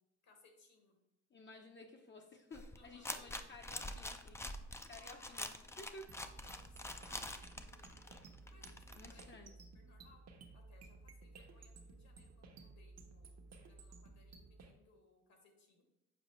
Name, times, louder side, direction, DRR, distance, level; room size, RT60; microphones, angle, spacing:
voice 1, 0.2-1.0 2.8-3.2 5.0-5.5 6.2-8.2 8.5-9.4 9.7-10.2 10.5-15.8, left 3 dB, 65° left, 3 dB, 1.5 m, -67 dB
voice 2, 1.3-4.4 4.9-6.1 9.0-9.5, left 2 dB, 40° left, 2 dB, 0.7 m, -54 dB
sound 1, 2.5-9.2, left 2 dB, 10° left, 0.4 m, -46 dB
sound 2, 6.1-14.7, right 3 dB, 60° right, 0.9 m, -56 dB
7.0 x 4.7 x 3.1 m, 0.88 s
cardioid pair, 90°, 30 cm